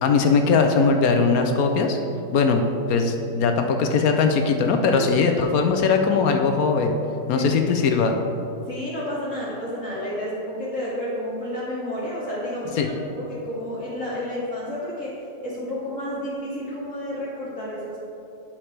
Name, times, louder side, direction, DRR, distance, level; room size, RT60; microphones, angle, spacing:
voice 1, 0.0-2.0 2.3-7.0 7.3-8.2 12.8-12.9, left 4 dB, 70° left, 5 dB, 0.9 m, -20 dB
voice 2, 8.7-15.2 15.4-18.0, left 1 dB, 50° left, -10 dB, 1.6 m, -31 dB
8.8 x 6.6 x 3.2 m, 2.9 s
omnidirectional pair, 1.8 m